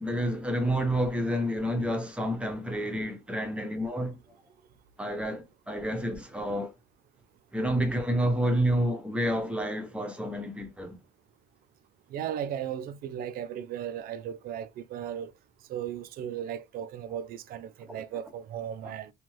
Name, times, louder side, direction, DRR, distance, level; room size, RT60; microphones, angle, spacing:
voice 1, 0.0-4.2 5.0-6.7 7.5-11.0 17.9-18.0, equal, 5° right, 0.8 m, -29 dB
voice 2, 12.1-15.3 15.7-19.1, right 9 dB, 60° right, 0.4 m, -36 dB
2.6 x 2.3 x 3.1 m
cardioid pair, 110°, 17 cm